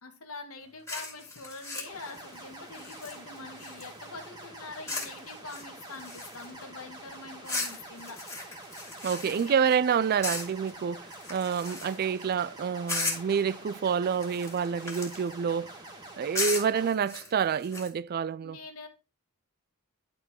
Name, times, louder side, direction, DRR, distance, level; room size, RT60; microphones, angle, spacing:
voice 1, 0.0-8.2 9.1-9.6 18.3-18.9, left 3 dB, 80° left, 2.0 m, -44 dB
sound 1, 0.9-4.1 4.9-5.2 5.5-6.6 7.4-9.8 10.2-10.7 11.1-12.2 12.9-13.4 14.1-15.3 16.3-17.9, left 3 dB, 15° left, 2.9 m, -36 dB
sound 2, 1.9-16.9, right 2 dB, 20° right, 2.1 m, -46 dB
voice 2, 9.0-15.7 16.2-18.6, right 7 dB, 45° right, 0.3 m, -28 dB
11.0 x 4.5 x 4.6 m
head